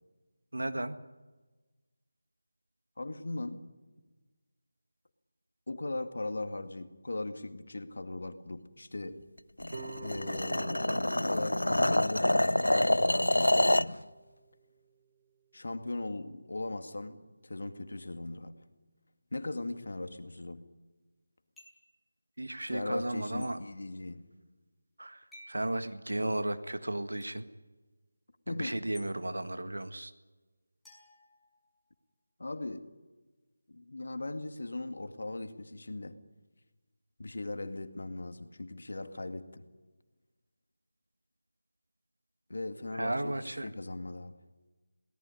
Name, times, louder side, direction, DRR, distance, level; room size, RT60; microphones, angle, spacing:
voice 1, 0.5-1.0 22.4-23.6 25.0-25.2 25.5-27.5 28.5-30.1 42.9-43.7, right 1 dB, 80° right, 10 dB, 1.7 m, -34 dB
voice 2, 3.0-3.6 5.7-9.2 10.0-13.5 15.5-18.6 19.3-20.7 22.7-24.3 28.5-28.8 32.4-32.9 33.7-36.2 37.2-39.6 42.5-44.4, left 2 dB, 65° left, 8 dB, 2.2 m, -39 dB
sound 1, 9.6-14.0, left 1 dB, 90° left, 0.7 m, -27 dB
sound 2, 9.7-14.8, right 3 dB, 55° right, 3.2 m, -49 dB
sound 3, 21.6-21.9 23.4-23.5 25.3-25.6 27.2-27.3 28.9-29.1 30.8-31.9, left 1 dB, ahead, 5.2 m, -55 dB
22.5 x 18.0 x 10.0 m, 1.3 s
figure-of-eight pair, 165°, 0 cm